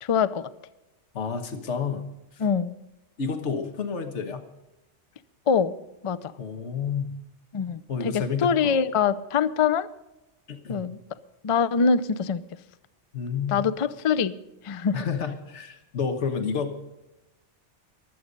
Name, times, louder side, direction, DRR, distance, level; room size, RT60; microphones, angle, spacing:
voice 1, 0.0-0.5 2.4-2.7 5.5-5.7 6.0-6.3 7.5-9.9 10.7-11.0 11.4-12.4 13.5-14.4 14.6-15.0, left 6 dB, 45° left, 14 dB, 0.4 m, -24 dB
voice 2, 1.1-2.0 2.3-2.4 3.2-4.5 6.4-7.1 7.9-8.8 10.5-10.8 13.1-13.6 14.9-16.8, left 6 dB, 75° left, 7 dB, 1.5 m, -30 dB
23.0 x 8.3 x 5.3 m, 0.96 s
omnidirectional pair, 1.2 m